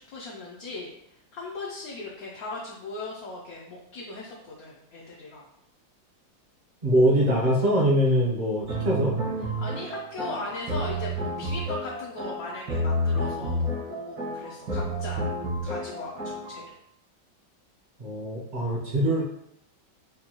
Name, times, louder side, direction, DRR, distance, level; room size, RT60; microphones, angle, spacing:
voice 1, 0.0-5.5 9.6-15.4 15.6-16.7, left 2 dB, 70° left, -3 dB, 0.9 m, -38 dB
voice 2, 6.8-9.2 18.0-19.2, equal, 45° right, -5 dB, 0.5 m, -23 dB
sound 1, 8.7-16.6, equal, 75° right, 1.8 m, -30 dB
5.2 x 2.3 x 2.9 m, 0.80 s
omnidirectional pair, 2.1 m